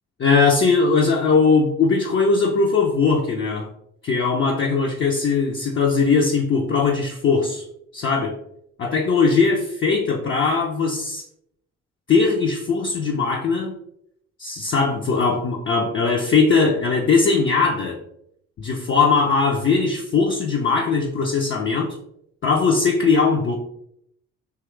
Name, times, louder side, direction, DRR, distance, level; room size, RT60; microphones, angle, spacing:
voice 1, 0.2-3.7 4.0-7.6 7.9-8.4 8.8-11.2 12.1-13.7 14.4-18.0 18.6-22.0 22.4-23.6, left 4 dB, 30° left, 0 dB, 0.5 m, -20 dB
3.0 x 2.3 x 3.1 m, 0.74 s
hypercardioid pair, 45°, 39 cm